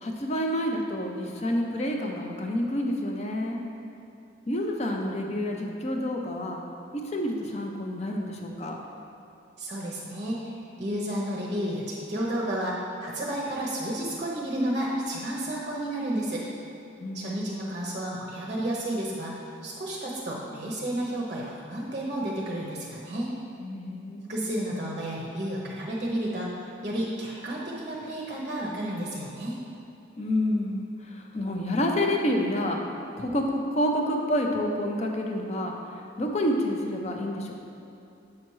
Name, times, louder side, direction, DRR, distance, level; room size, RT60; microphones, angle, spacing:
voice 1, 0.0-3.6 4.5-6.6 6.9-8.8 17.0-17.4 23.6-24.3 30.2-32.8 33.2-35.7 36.2-37.5, left 1 dB, 35° left, 2 dB, 0.6 m, -28 dB
voice 2, 9.6-10.4 10.8-16.4 17.1-23.3 24.3-26.5 26.8-29.6, right 1 dB, 35° right, -3 dB, 0.7 m, -31 dB
7.4 x 5.7 x 3.1 m, 2.8 s
head